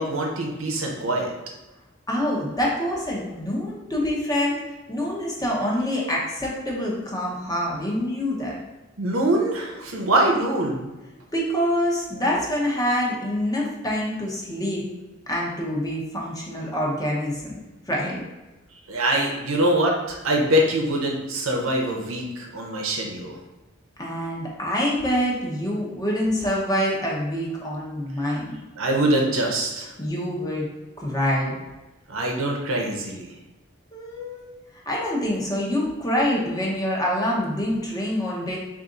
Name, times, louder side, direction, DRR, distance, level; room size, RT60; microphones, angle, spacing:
voice 1, 0.0-1.3 9.0-10.9 18.9-23.3 28.8-29.9 32.1-33.3, right 1 dB, 80° right, 0 dB, 0.8 m, -23 dB
voice 2, 2.1-4.6 4.9-8.6 11.3-14.8 15.3-18.2 24.0-28.6 30.0-30.7 31.0-31.5 33.9-34.5 34.8-38.6, equal, 20° left, -4 dB, 0.9 m, -26 dB
4.1 x 2.6 x 3.8 m, 1.1 s
head